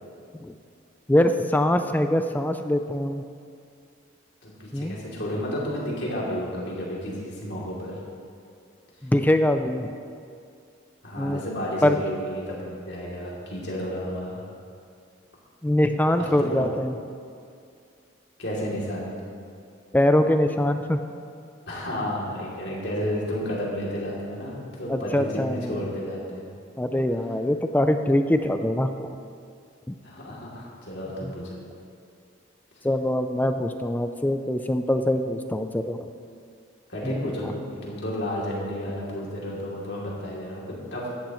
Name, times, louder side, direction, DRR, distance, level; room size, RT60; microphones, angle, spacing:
voice 1, 1.1-3.2 4.7-5.0 9.0-9.9 11.2-11.4 11.8-12.0 15.6-16.9 19.9-21.0 24.9-25.8 26.8-29.1 29.9-30.0 31.2-31.3 32.8-36.0 37.0-37.3, left 1 dB, 10° left, 8 dB, 0.4 m, -23 dB
voice 2, 4.4-8.0 11.0-14.4 16.2-16.6 18.4-19.1 21.7-26.5 30.0-31.6 36.9-41.1, equal, 55° left, -5 dB, 2.9 m, -32 dB
16.0 x 11.5 x 3.1 m, 2.4 s
head